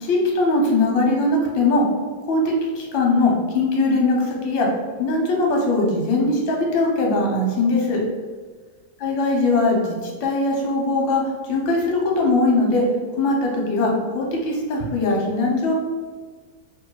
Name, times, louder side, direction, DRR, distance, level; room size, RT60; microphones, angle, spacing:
voice 1, 0.0-1.8 2.2-4.7 5.0-8.0 9.0-12.8 13.1-15.7, left 2 dB, 85° left, -1 dB, 1.6 m, -20 dB
3.1 x 2.9 x 4.6 m, 1.5 s
omnidirectional pair, 2.0 m